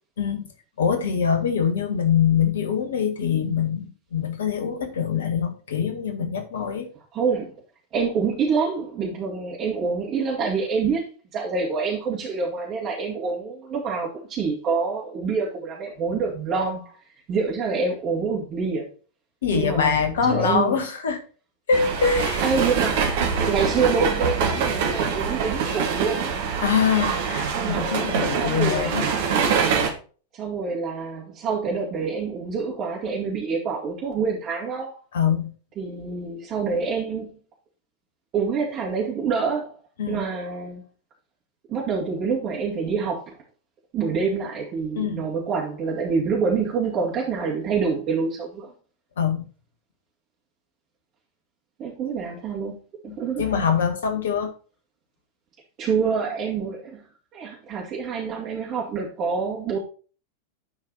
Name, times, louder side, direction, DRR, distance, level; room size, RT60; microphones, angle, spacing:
voice 1, 0.8-6.9 19.4-21.2 21.7-22.5 26.6-29.1 35.1-35.5 40.0-40.2 44.9-45.3 49.2-49.4 53.1-54.5, left 7 dB, 60° left, 7 dB, 1.6 m, -24 dB
voice 2, 7.1-7.5 7.9-11.0 11.3-17.0 17.3-18.9 19.5-20.8 22.4-23.1 23.4-26.4 27.6-29.1 30.3-34.9 35.8-37.4 38.3-39.8 40.1-40.8 41.7-43.4 43.9-48.7 51.8-52.8 53.0-53.5 55.8-57.1 57.3-59.8, right 5 dB, 35° right, -4 dB, 2.4 m, -26 dB
sound 1, 21.7-29.9, right 6 dB, 55° right, 1.7 m, -24 dB
10.5 x 4.6 x 4.2 m, 0.38 s
figure-of-eight pair, 90°, 0 cm